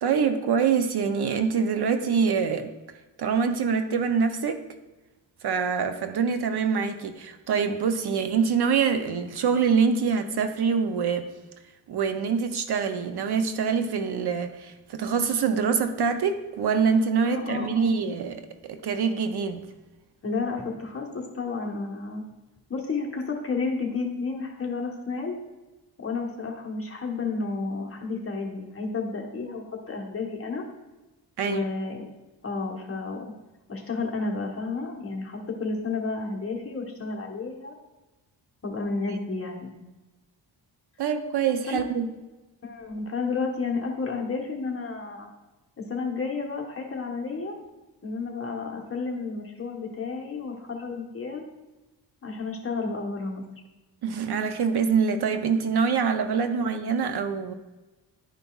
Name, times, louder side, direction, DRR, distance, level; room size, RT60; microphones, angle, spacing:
voice 1, 0.0-2.7 3.2-4.6 5.4-11.3 11.9-19.7 31.4-31.6 41.0-42.1 54.0-57.5, right 6 dB, 60° right, 8 dB, 0.6 m, -25 dB
voice 2, 17.2-18.0 20.2-22.2 22.7-25.4 26.0-30.6 31.5-32.0 32.4-33.3 33.7-37.8 38.6-39.7 41.7-41.8 42.6-45.3 45.8-47.6 48.0-51.4 52.2-53.4, left 4 dB, 30° left, 0 dB, 1.2 m, -31 dB
11.0 x 5.3 x 2.3 m, 1.1 s
wide cardioid pair, 130°, 44 cm